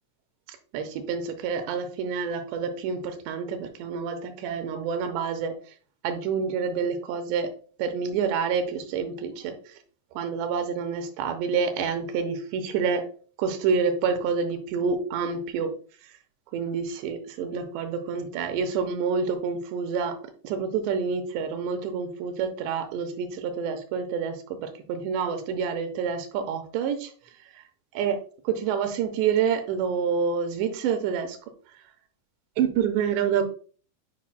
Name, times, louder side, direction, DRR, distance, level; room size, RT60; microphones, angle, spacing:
voice 1, 0.7-5.5 6.0-7.5 7.8-9.6 10.2-13.0 13.4-15.7 16.5-20.1 20.4-27.1 27.9-28.2 28.4-31.4 32.6-33.4, right 6 dB, 80° right, 6 dB, 2.9 m, -28 dB
10.0 x 5.3 x 2.2 m, 0.41 s
omnidirectional pair, 5.3 m